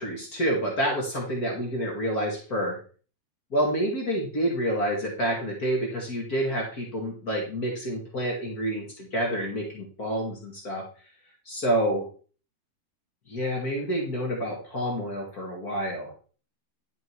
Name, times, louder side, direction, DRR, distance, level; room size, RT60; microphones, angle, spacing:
voice 1, 0.0-2.8 3.5-10.8 11.5-12.1 13.3-16.1, right 1 dB, 50° left, -1 dB, 2.6 m, -28 dB
11.0 x 5.2 x 4.7 m, 0.39 s
omnidirectional pair, 2.2 m